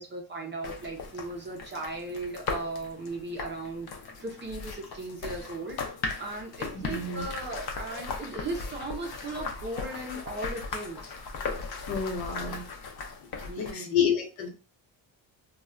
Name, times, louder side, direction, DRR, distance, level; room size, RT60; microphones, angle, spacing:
voice 1, 0.0-5.8 6.2-11.1 13.4-14.0, right 2 dB, 25° right, 0 dB, 0.4 m, -37 dB
sound 1, 0.6-13.7, left 4 dB, 55° left, 0.6 m, -38 dB
voice 2, 6.7-7.2 11.9-12.7 13.5-14.5, left 7 dB, 75° left, 3 dB, 0.9 m, -29 dB
2.2 x 2.2 x 3.6 m, 0.33 s
cardioid pair, 175°, 46 cm